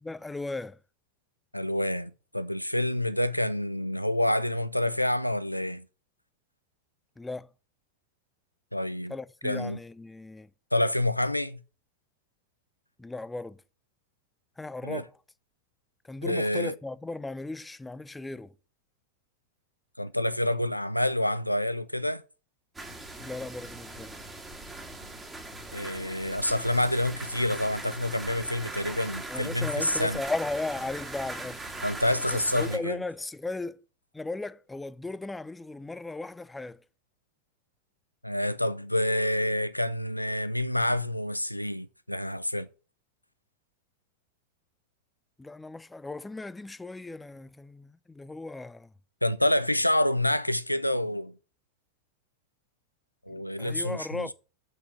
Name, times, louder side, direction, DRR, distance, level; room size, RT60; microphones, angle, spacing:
voice 1, 0.0-0.8 7.2-7.5 9.1-10.5 13.0-13.6 14.6-15.2 16.0-18.5 23.2-24.1 29.3-31.7 32.3-33.8 34.1-36.8 45.4-48.9 53.3-54.3, left 2 dB, 10° left, 0.5 m, -36 dB
voice 2, 1.5-5.8 8.7-9.1 9.4-9.8 10.7-11.6 14.8-15.0 16.2-16.7 20.0-22.2 25.7-30.2 31.8-33.0 38.2-42.7 49.2-51.3 53.3-54.3, left 1 dB, 90° left, 0.5 m, -28 dB
sound 1, 22.7-32.8, right 2 dB, 10° right, 2.2 m, -40 dB
7.5 x 6.0 x 6.8 m
figure-of-eight pair, 90°, 0 cm